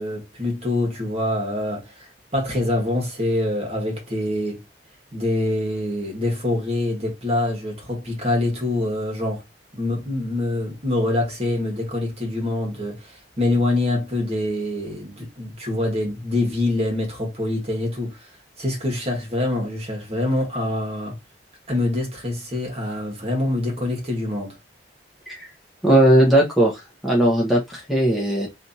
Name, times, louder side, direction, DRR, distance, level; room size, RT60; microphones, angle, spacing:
voice 1, 0.0-4.6 5.1-9.4 9.7-18.2 18.6-21.2 21.7-24.6, left 1 dB, 35° right, 1.8 m, -25 dB
voice 2, 25.8-28.5, right 1 dB, ahead, 0.9 m, -18 dB
3.3 x 2.8 x 4.0 m
head